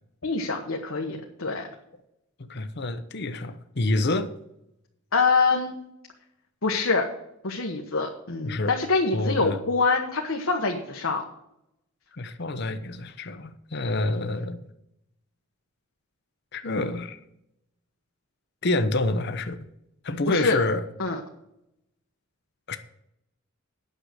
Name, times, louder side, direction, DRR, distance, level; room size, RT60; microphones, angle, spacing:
voice 1, 0.2-1.7 5.1-5.8 6.6-7.1 7.4-11.2 20.3-20.6 21.0-21.2, left 4 dB, 75° left, 1 dB, 1.2 m, -25 dB
voice 2, 2.4-4.3 8.4-8.7 9.1-9.6 12.1-14.6 16.5-17.2 18.6-19.6 20.0-20.8 22.7-22.8, left 2 dB, 55° left, 10 dB, 0.8 m, -27 dB
9.0 x 6.7 x 7.9 m, 0.81 s
head